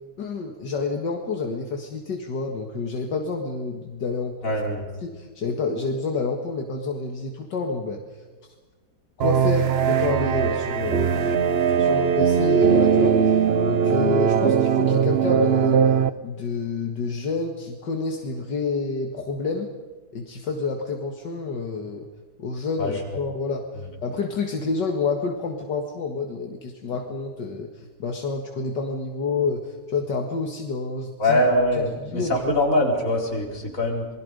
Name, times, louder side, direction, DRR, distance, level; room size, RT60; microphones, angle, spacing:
voice 1, 0.2-4.4 5.0-8.0 9.2-11.5 11.8-13.4 13.7-15.9 16.2-19.7 20.1-22.1 22.4-23.7 24.0-31.4 32.0-32.3, left 4 dB, 75° left, 2 dB, 2.4 m, -28 dB
voice 2, 4.4-4.8 22.8-23.0 31.2-34.1, left 1 dB, 45° left, 0 dB, 4.8 m, -23 dB
sound 1, 9.2-16.1, right 7 dB, 50° right, 0.8 m, -20 dB
28.0 x 21.0 x 5.3 m, 1.3 s
omnidirectional pair, 1.9 m